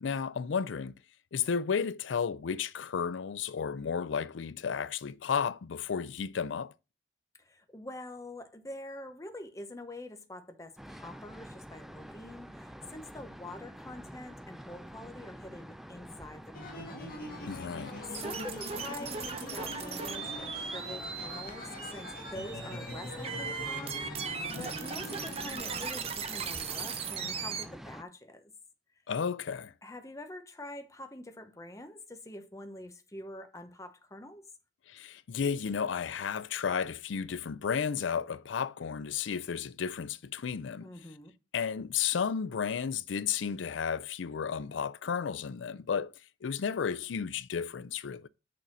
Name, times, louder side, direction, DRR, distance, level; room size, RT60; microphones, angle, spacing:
voice 1, 0.0-0.9 1.3-6.7 17.5-18.0 24.6-24.7 29.1-29.7 34.9-40.9 41.5-46.1 46.4-48.3, left 6 dB, 90° left, 0.4 m, -33 dB
voice 2, 7.4-17.1 18.1-28.5 29.8-34.4 40.8-41.3, left 1 dB, 15° left, 0.9 m, -46 dB
sound 1, 10.8-28.0, equal, ahead, 0.3 m, -47 dB
sound 2, 16.5-25.9, left 1 dB, 50° left, 1.4 m, -43 dB
sound 3, 18.1-27.6, right 6 dB, 35° right, 0.7 m, -38 dB
6.5 x 4.0 x 6.0 m
head